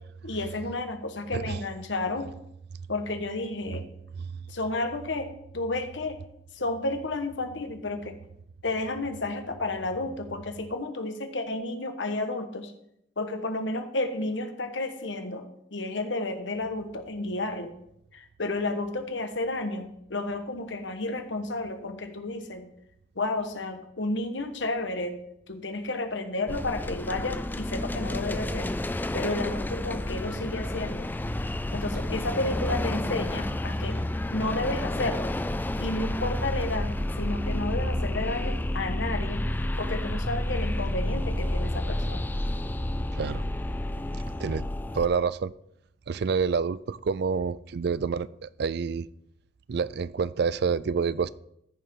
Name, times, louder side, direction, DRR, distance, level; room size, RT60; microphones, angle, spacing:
voice 1, 0.2-2.3 2.9-3.8 4.5-6.2 6.5-8.2 8.6-12.7 13.2-15.5 15.7-17.7 18.1-22.7 23.1-25.2 25.5-28.7 29.1-31.1 31.7-34.0 34.3-35.3 35.8-39.4 39.8-42.2, left 2 dB, 90° left, 7 dB, 1.3 m, -31 dB
sound 1, 26.5-45.1, left 1 dB, 10° left, 0.4 m, -30 dB
voice 2, 43.1-43.4 44.4-44.7 44.9-45.5 46.1-49.1 49.7-51.3, right 5 dB, 60° right, 18 dB, 0.4 m, -28 dB
14.0 x 6.9 x 3.8 m, 0.75 s
head